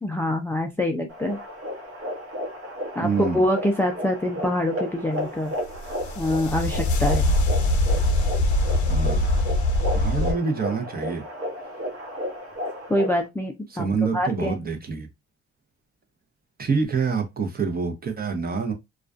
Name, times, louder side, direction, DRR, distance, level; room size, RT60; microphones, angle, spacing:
voice 1, 0.0-1.4 2.9-5.5 6.2-7.4 12.9-13.9 14.1-14.6, left 1 dB, 5° left, 0.3 m, -25 dB
sound 1, 1.1-13.3, equal, 50° right, 0.9 m, -33 dB
voice 2, 3.0-3.4 8.9-9.3 9.9-11.2 13.7-15.1 16.6-18.7, right 5 dB, 30° right, 0.7 m, -26 dB
sound 2, 5.7-10.3, left 1 dB, 75° left, 0.7 m, -22 dB
2.3 x 2.2 x 2.3 m
cardioid pair, 90°, 30 cm